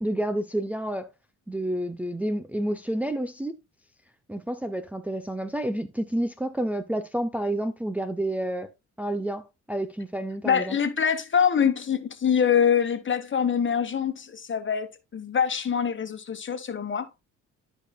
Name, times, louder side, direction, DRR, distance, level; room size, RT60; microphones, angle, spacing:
voice 1, 0.0-1.1 1.5-3.6 4.3-8.7 9.0-10.8, right 1 dB, 5° right, 0.6 m, -29 dB
voice 2, 10.4-17.1, left 7 dB, 40° left, 1.3 m, -24 dB
12.5 x 5.1 x 2.3 m
cardioid pair, 90°, 30 cm